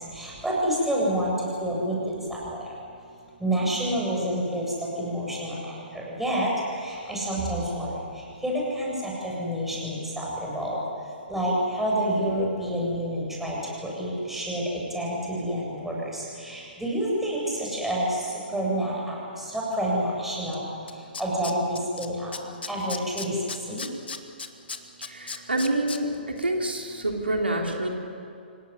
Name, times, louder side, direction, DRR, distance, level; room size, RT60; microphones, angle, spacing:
voice 1, 0.1-1.3 1.6-1.9 2.3-2.6 3.4-4.6 5.0-5.5 5.9-6.5 6.8-7.9 8.4-8.9 9.2-10.8 11.3-13.6 13.8-18.1 18.5-19.2 19.5-20.6 21.2-22.3 22.7-23.3 23.7-23.8, right 1 dB, 5° right, -4 dB, 7.7 m, -28 dB
Tools, 20.5-20.6 20.9-22.1 22.3-26.0 26.4-26.5, left 5 dB, 75° left, 1.8 m, -35 dB
voice 2, 25.1-26.1 26.4-27.9, right 1 dB, 90° right, 1 dB, 3.4 m, -27 dB
26.5 x 18.0 x 9.9 m, 2.5 s
figure-of-eight pair, 130°, 6 cm